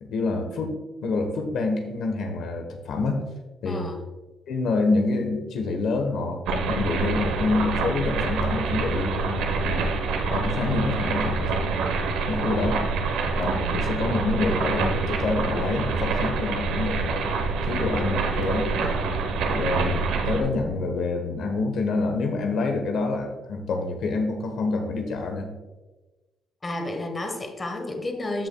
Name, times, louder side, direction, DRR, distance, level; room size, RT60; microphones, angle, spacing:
voice 1, 0.0-3.2 3.6-3.9 4.5-9.9 10.3-12.0 12.3-12.8 13.3-17.2 17.7-19.0 19.5-25.5, left 3 dB, 75° left, 4 dB, 1.1 m, -27 dB
voice 2, 3.6-4.0 26.6-28.5, left 2 dB, 25° left, 4 dB, 1.1 m, -31 dB
sound 1, 6.5-20.4, right 4 dB, 90° right, 0.9 m, -26 dB
13.0 x 5.4 x 2.3 m, 1.2 s
cardioid pair, 90°, 0 cm